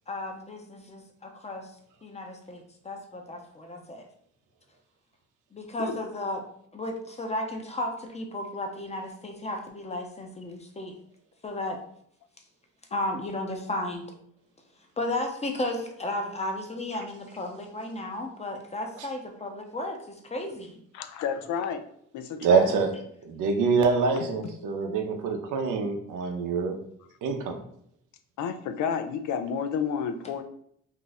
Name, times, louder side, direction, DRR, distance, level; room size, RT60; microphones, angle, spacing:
voice 1, 0.1-1.7 2.0-4.1 5.5-6.4 6.7-10.9 11.4-11.8 12.9-14.1 15.0-20.8, left 1 dB, 20° left, 3 dB, 0.7 m, -34 dB
voice 2, 20.9-21.8 22.1-22.7 28.4-30.4, left 7 dB, 75° left, 9 dB, 0.5 m, -30 dB
voice 3, 22.4-22.9 23.2-26.8 27.2-27.6, right 5 dB, 85° right, 4 dB, 0.7 m, -25 dB
2.7 x 2.4 x 4.0 m, 0.68 s
cardioid pair, 90°, 30 cm